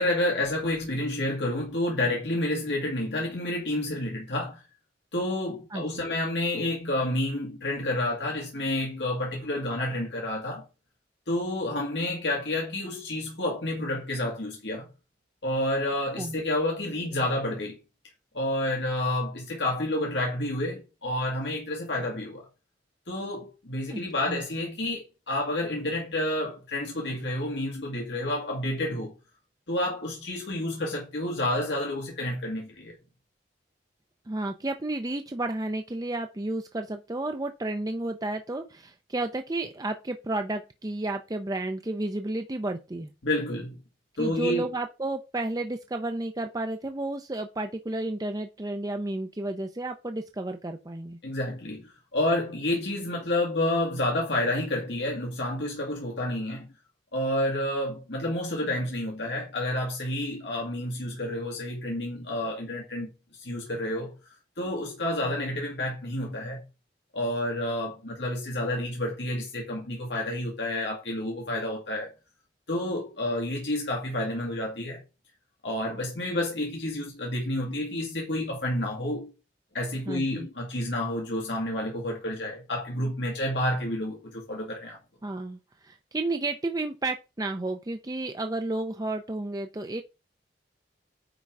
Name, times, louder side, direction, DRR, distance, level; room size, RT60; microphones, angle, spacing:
voice 1, 0.0-4.6 5.1-10.6 11.3-14.9 15.4-17.8 18.3-22.5 23.1-29.1 29.7-33.0 43.2-43.8 44.2-44.7 51.2-56.7 57.1-64.1 64.6-66.6 67.1-72.1 72.7-75.0 75.6-79.3 79.7-85.0, left 1 dB, 90° left, 2.0 m, -29 dB
voice 2, 5.7-6.1 16.2-16.4 23.9-24.0 24.3-24.4 34.3-43.1 44.2-51.2 80.1-80.5 85.2-90.0, right 2 dB, 20° right, 0.5 m, -32 dB
9.7 x 3.7 x 4.6 m
head